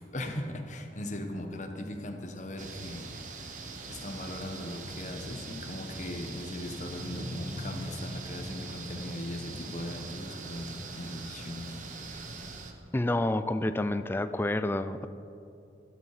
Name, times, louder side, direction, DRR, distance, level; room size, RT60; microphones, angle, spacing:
voice 1, 0.0-3.4 3.9-11.8, left 1 dB, 40° left, 4 dB, 1.2 m, -39 dB
sound 1, 2.6-12.7, right 2 dB, 45° right, 1.1 m, -41 dB
voice 2, 12.9-15.1, left 1 dB, 10° left, 11 dB, 0.3 m, -29 dB
12.5 x 12.5 x 4.9 m, 2.7 s
head